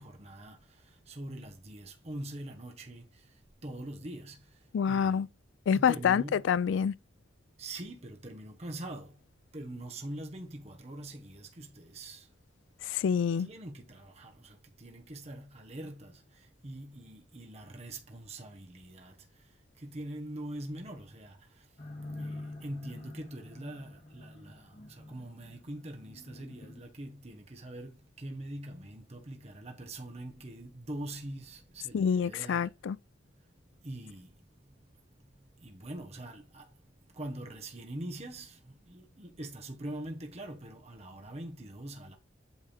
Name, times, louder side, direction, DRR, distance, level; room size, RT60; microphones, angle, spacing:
voice 1, 0.0-5.2 5.7-6.4 7.6-9.2 9.5-12.3 13.4-21.7 22.1-32.7 33.8-34.4 34.6-34.9 35.2-42.1, right 1 dB, 35° right, 1.0 m, -44 dB
voice 2, 4.7-5.3 5.7-6.9 12.8-13.5 31.9-33.0, left 7 dB, 85° left, 0.3 m, -27 dB
sound 1, 21.8-26.8, left 2 dB, 45° left, 1.7 m, -46 dB
8.2 x 3.4 x 4.2 m
head